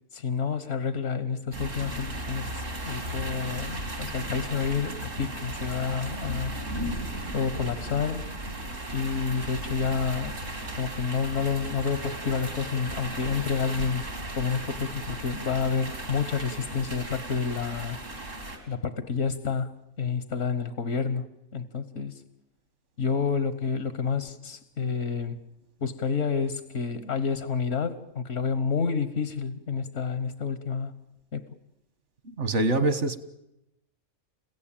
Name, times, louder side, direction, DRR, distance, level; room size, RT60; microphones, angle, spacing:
voice 1, 0.1-6.5 7.3-8.3 8.9-10.4 10.8-14.1 14.3-18.0 18.7-19.7 20.0-22.2 23.0-25.4 25.8-31.0 31.3-31.5, left 5 dB, 80° left, 1.6 m, -29 dB
sound 1, 1.5-18.6, right 1 dB, 85° right, 4.1 m, -36 dB
voice 2, 32.4-33.2, right 2 dB, 70° right, 1.7 m, -24 dB
29.5 x 16.5 x 8.9 m
omnidirectional pair, 1.3 m